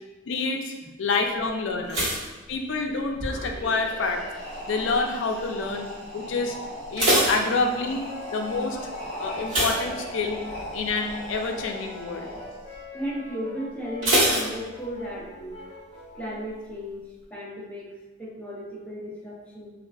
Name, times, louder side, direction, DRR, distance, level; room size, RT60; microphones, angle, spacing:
voice 1, 0.3-0.7 1.0-2.2 2.5-4.2 4.7-5.9 6.1-6.5 6.9-8.0 8.3-8.8 9.2-10.4 10.7-12.3, left 3 dB, 75° left, 3 dB, 0.4 m, -27 dB
voice 2, 1.9-2.5 5.6-5.7 6.5-6.6 8.7-8.8 12.9-15.6 16.1-19.7, equal, 5° left, -6 dB, 0.5 m, -36 dB
sound 1, 1.9-3.4 3.6-4.1 4.7-5.1 5.4-5.5 5.9-6.0 6.6-8.2 9.4-10.6 10.9-11.2 11.6-11.7 14.0-15.2 15.5-15.6, right 1 dB, 75° right, 1.1 m, -25 dB
sound 2, 3.1-12.8, equal, 40° right, 1.2 m, -38 dB
Brass instrument, 8.0-16.6, left 2 dB, 30° left, 0.9 m, -44 dB
3.5 x 2.3 x 2.2 m, 1.1 s
head